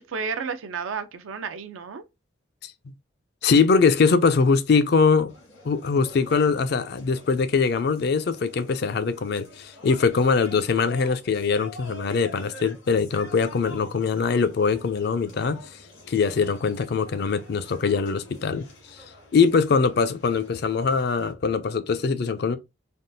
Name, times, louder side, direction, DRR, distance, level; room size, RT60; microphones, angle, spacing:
voice 1, 0.0-2.0, right 5 dB, 90° right, 0.5 m, -32 dB
voice 2, 3.4-5.3 5.6-15.6 16.1-19.0 19.3-22.6, left 5 dB, 55° left, 0.4 m, -22 dB
sound 1, 5.3-21.3, left 2 dB, 80° left, 1.5 m, -47 dB
3.4 x 2.3 x 2.5 m
head